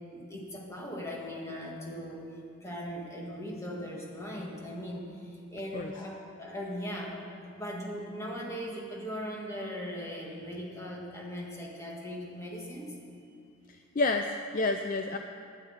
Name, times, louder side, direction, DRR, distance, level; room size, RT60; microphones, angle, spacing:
voice 1, 0.1-13.0 13.3-13.4, equal, 15° left, -2 dB, 1.8 m, -39 dB
voice 2, 14.0-15.2, left 3 dB, 40° left, 5 dB, 0.4 m, -29 dB
9.5 x 9.4 x 9.6 m, 2.5 s
head